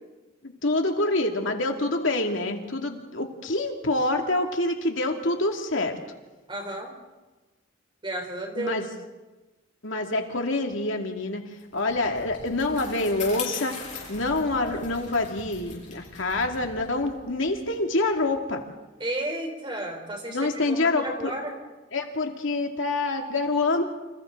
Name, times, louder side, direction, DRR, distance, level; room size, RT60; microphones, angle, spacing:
voice 1, 0.4-5.9 8.5-8.9 9.8-11.4 11.7-13.8 14.1-18.6 20.3-21.3 21.9-23.8, left 2 dB, 70° left, 3 dB, 2.5 m, -26 dB
voice 2, 6.5-6.9 8.0-8.8 19.0-21.6, right 1 dB, 25° right, 3 dB, 3.6 m, -32 dB
Bicycle, 11.6-18.3, left 4 dB, 35° left, 7.6 m, -40 dB
29.0 x 26.5 x 3.9 m, 1.2 s
head